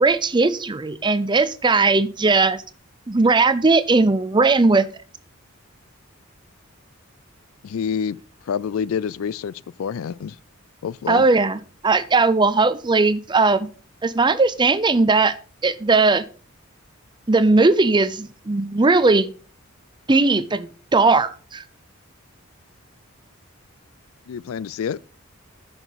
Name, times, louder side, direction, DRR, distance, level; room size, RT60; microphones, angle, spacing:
voice 1, 0.0-2.6 3.1-4.9 11.1-13.7 14.0-15.3 15.6-16.2 17.3-19.3 20.1-21.6, right 3 dB, 20° right, 0.6 m, -18 dB
voice 2, 7.6-8.2 8.5-10.4 10.8-11.2 24.3-25.0, left 7 dB, 75° left, 0.4 m, -27 dB
10.0 x 7.1 x 4.1 m
head